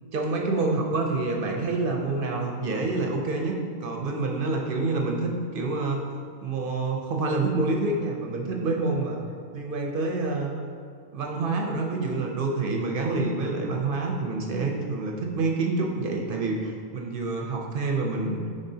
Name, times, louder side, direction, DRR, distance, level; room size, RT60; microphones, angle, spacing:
voice 1, 0.1-6.0 6.4-9.2 9.5-10.5 11.1-18.4, right 3 dB, 55° right, 1 dB, 0.6 m, -27 dB
10.5 x 3.7 x 2.7 m, 2.2 s
omnidirectional pair, 1.5 m